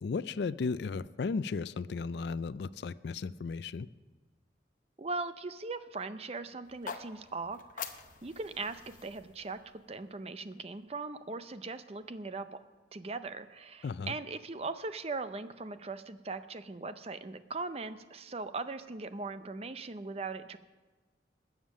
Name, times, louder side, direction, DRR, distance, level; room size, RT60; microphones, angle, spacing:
voice 1, 0.0-3.9 13.8-14.1, left 4 dB, 65° left, 17 dB, 0.4 m, -35 dB
voice 2, 5.0-9.6 9.9-12.6 12.9-20.6, right 3 dB, 30° right, 12 dB, 0.5 m, -39 dB
sound 1, 6.6-10.8, left 6 dB, 45° left, 0.8 m, -46 dB
21.0 x 7.4 x 6.4 m, 1.3 s
head